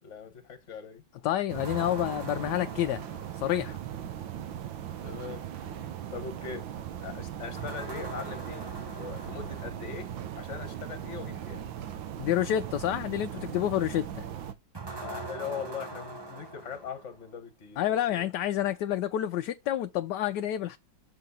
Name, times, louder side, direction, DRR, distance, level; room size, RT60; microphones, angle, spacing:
voice 1, 0.0-1.0 5.0-6.7 7.0-8.7 8.9-11.7 14.9-18.3, left 6 dB, 40° left, 1.5 m, -41 dB
voice 2, 1.2-3.0 3.4-3.8 12.2-14.3 17.8-20.8, left 11 dB, 75° left, 1.1 m, -29 dB
sound 1, 1.5-14.5, right 10 dB, 90° right, 1.6 m, -39 dB
sound 2, 1.6-3.9 7.6-10.1 14.7-17.4, right 3 dB, 25° right, 0.5 m, -42 dB
6.7 x 3.9 x 5.6 m
omnidirectional pair, 2.0 m